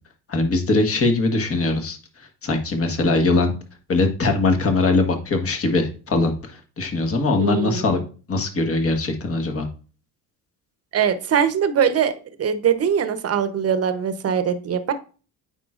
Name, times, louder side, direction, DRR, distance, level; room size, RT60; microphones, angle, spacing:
voice 1, 0.3-2.0 2.4-3.5 3.9-8.0 8.3-9.7, left 3 dB, 35° left, 5 dB, 1.5 m, -21 dB
voice 2, 7.4-7.8 10.9-14.9, right 7 dB, 40° right, 10 dB, 0.9 m, -22 dB
8.9 x 4.5 x 2.5 m, 0.36 s
cardioid pair, 95°, 37 cm